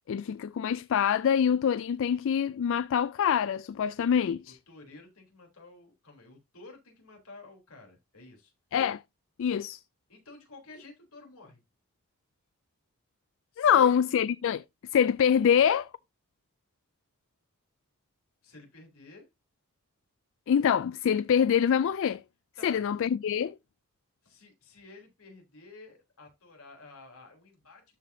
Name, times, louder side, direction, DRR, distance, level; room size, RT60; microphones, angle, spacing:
voice 1, 0.1-4.6 8.7-9.0 9.4-9.8 13.6-14.6 14.9-15.9 20.5-22.2 22.6-23.6, left 8 dB, 60° left, 0.3 m, -25 dB
voice 2, 4.5-8.5 10.1-11.6 13.5-14.0 18.4-19.3 22.6-22.8 24.2-28.0, left 3 dB, 80° left, 3.6 m, -51 dB
12.5 x 5.0 x 2.7 m
head